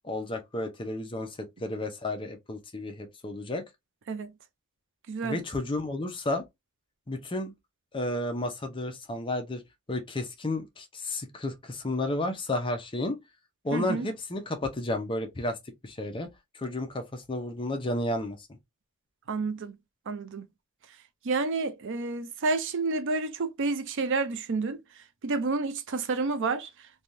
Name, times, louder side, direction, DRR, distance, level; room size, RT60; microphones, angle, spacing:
voice 1, 0.0-3.6 5.2-6.4 7.1-7.5 7.9-9.6 9.9-13.2 13.6-15.6 15.8-16.3 16.5-18.4, left 1 dB, 25° left, 0.6 m, -32 dB
voice 2, 5.1-5.4 13.7-14.1 19.3-19.8 20.1-20.5 21.2-24.8 25.2-26.7, right 3 dB, 55° right, 0.5 m, -29 dB
3.3 x 2.3 x 2.6 m
head